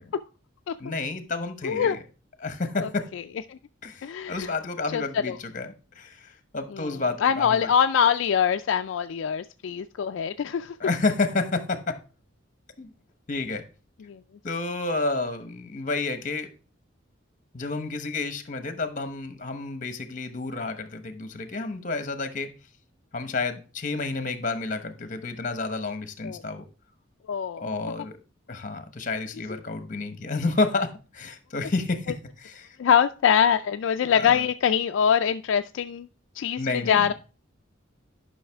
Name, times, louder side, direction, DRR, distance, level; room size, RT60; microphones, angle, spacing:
voice 1, 0.8-2.0 2.4-3.1 3.8-7.7 10.8-12.0 12.8-12.9 13.3-13.6 14.4-16.5 17.5-22.5 23.1-26.6 27.6-28.2 28.5-32.8 34.1-34.4 36.6-37.1, left 3 dB, 40° left, 9 dB, 1.0 m, -30 dB
voice 2, 1.6-2.0 2.8-3.2 3.5-3.6 4.0-4.5 4.9-5.4 6.7-6.9 7.2-10.8 14.1-14.2 26.2-26.4 27.3-27.7 32.8-36.1 36.4-36.6 36.9-37.1, left 8 dB, 75° left, 8 dB, 0.3 m, -23 dB
10.5 x 5.7 x 3.4 m, 0.35 s
head